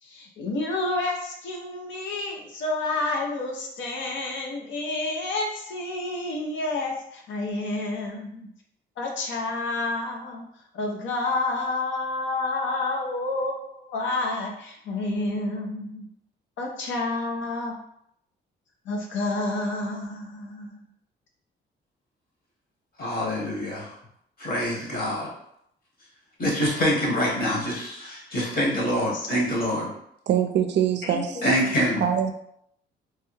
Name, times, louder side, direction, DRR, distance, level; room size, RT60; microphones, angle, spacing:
voice 1, 0.0-8.5 9.0-10.4 10.7-16.1 16.6-17.8 18.9-20.9 29.1-29.3 31.0-31.8, left 2 dB, 70° left, 0 dB, 0.7 m, -29 dB
voice 2, 23.0-23.9 24.4-25.3 26.4-29.9 31.4-32.0, equal, 50° left, -4 dB, 1.4 m, -25 dB
voice 3, 30.3-31.4 32.0-32.3, right 9 dB, 60° right, 7 dB, 0.4 m, -23 dB
3.2 x 2.2 x 3.1 m, 0.73 s
cardioid pair, 90°, 20 cm